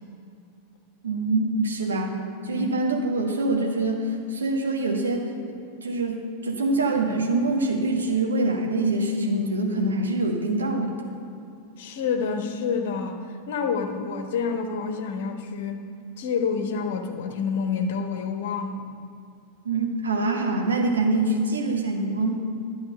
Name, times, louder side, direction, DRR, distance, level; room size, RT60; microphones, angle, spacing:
voice 1, 1.0-11.0 19.6-22.3, right 2 dB, 70° right, 2 dB, 1.5 m, -25 dB
voice 2, 11.8-15.8 16.2-18.8, left 5 dB, 55° left, 6 dB, 1.1 m, -28 dB
12.5 x 7.6 x 5.7 m, 2.5 s
figure-of-eight pair, 90°, 0 cm